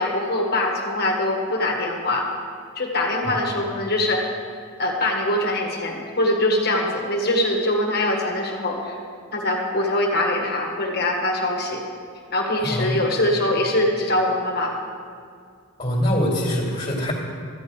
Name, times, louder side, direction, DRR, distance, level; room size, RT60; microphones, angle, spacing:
voice 1, 0.0-2.2 2.7-4.3 4.8-9.0 9.3-11.8 12.3-14.7, left 1 dB, 50° left, 0 dB, 1.6 m, -23 dB
voice 2, 12.6-13.0 15.8-17.1, equal, 30° left, -3 dB, 2.3 m, -23 dB
13.5 x 5.3 x 8.8 m, 2.2 s
head